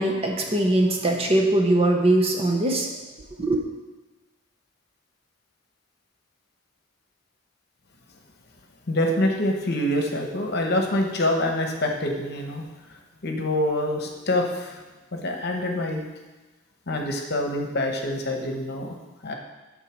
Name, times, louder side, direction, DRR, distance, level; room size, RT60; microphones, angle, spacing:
voice 1, 0.0-2.9 3.4-3.6, right 1 dB, 25° right, 2 dB, 0.7 m, -21 dB
voice 2, 8.9-14.8 15.1-16.1 16.9-19.0 19.2-19.3, left 1 dB, 50° left, 2 dB, 1.0 m, -26 dB
8.9 x 4.0 x 6.3 m, 1.2 s
head